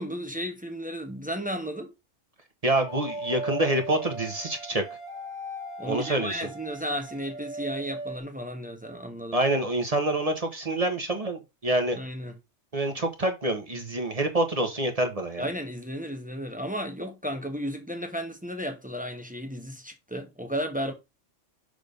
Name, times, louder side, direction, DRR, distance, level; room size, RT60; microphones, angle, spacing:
voice 1, 0.0-1.9 5.8-9.4 12.0-12.4 15.4-20.9, equal, 5° right, 1.0 m, -34 dB
voice 2, 2.6-4.8 5.9-6.5 9.3-12.0 12.7-15.5, right 1 dB, 30° right, 1.0 m, -26 dB
sound 1, 2.9-8.2, right 1 dB, 25° left, 1.2 m, -38 dB
6.4 x 3.3 x 5.2 m
omnidirectional pair, 1.3 m